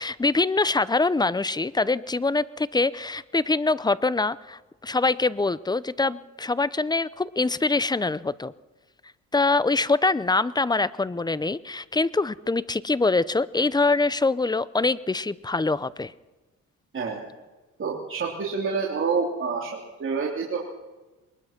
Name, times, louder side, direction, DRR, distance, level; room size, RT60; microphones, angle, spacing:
voice 1, 0.0-8.5 9.3-16.1, left 3 dB, 15° left, 18 dB, 0.7 m, -24 dB
voice 2, 17.8-20.7, right 5 dB, 40° right, -2 dB, 3.1 m, -28 dB
22.0 x 20.5 x 5.9 m, 1.2 s
cardioid pair, 90°, 30 cm